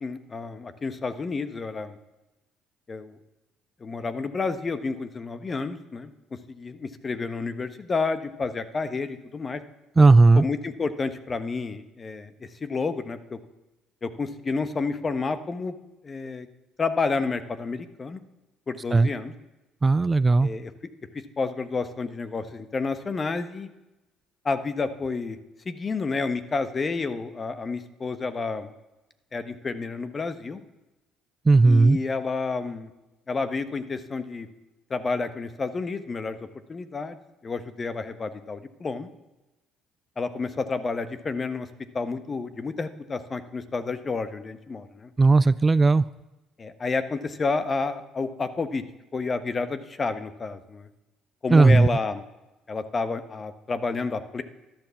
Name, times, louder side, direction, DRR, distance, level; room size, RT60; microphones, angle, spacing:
voice 1, 0.0-2.0 2.9-3.2 3.8-6.1 6.5-9.6 10.3-13.4 14.0-15.8 16.0-16.5 16.8-18.2 18.7-19.3 20.4-20.7 21.1-23.7 24.4-25.4 25.6-28.7 29.3-30.6 31.6-32.9 33.3-34.5 34.9-37.2 37.4-39.1 40.2-41.7 41.9-45.1 46.6-48.8 49.1-50.9 51.4-52.2 52.7-54.4, left 4 dB, 35° left, 11 dB, 1.2 m, -30 dB
voice 2, 10.0-10.4 18.9-19.1 19.8-20.5 31.5-32.0 45.2-46.0 51.5-51.9, right 3 dB, 25° right, 17 dB, 0.4 m, -16 dB
12.0 x 12.0 x 7.1 m, 1.0 s
hypercardioid pair, 65°, 0 cm